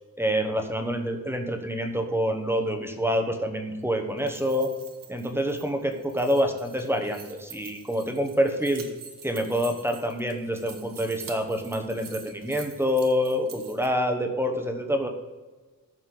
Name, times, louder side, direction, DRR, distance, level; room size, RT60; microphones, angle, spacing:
voice 1, 0.2-4.7 5.1-8.9 9.2-15.1, equal, 5° right, 5 dB, 1.0 m, -27 dB
sound 1, 4.1-13.9, right 5 dB, 65° right, 1.5 m, -46 dB
14.5 x 6.3 x 3.9 m, 1.3 s
wide cardioid pair, 160°, 35 cm